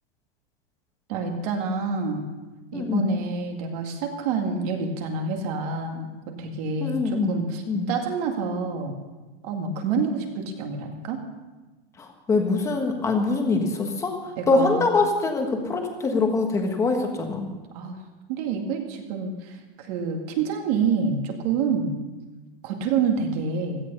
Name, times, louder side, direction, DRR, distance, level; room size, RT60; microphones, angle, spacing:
voice 1, 1.1-2.3 2.7-6.1 6.4-7.6 7.9-8.9 9.4-11.2 14.4-15.0 17.7-18.0 18.3-21.9 22.6-23.8, right 5 dB, 40° right, 3 dB, 2.1 m, -27 dB
voice 2, 2.7-3.1 6.8-7.3 7.7-7.9 12.0-14.2 14.5-17.5, left 3 dB, 10° left, 3 dB, 1.4 m, -23 dB
16.5 x 13.5 x 5.5 m, 1.2 s
supercardioid pair, 175°, 30 cm